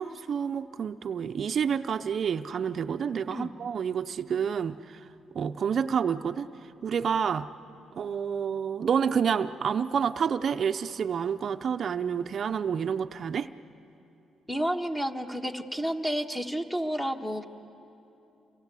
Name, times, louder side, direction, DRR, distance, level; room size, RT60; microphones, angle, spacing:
voice 1, 0.0-5.0 5.3-6.5 6.8-7.5 8.0-13.5, right 7 dB, 55° right, 9 dB, 0.6 m, -29 dB
voice 2, 14.5-17.5, equal, 10° left, 6 dB, 1.4 m, -30 dB
28.0 x 24.0 x 8.3 m, 2.9 s
cardioid pair, 90°, 0 cm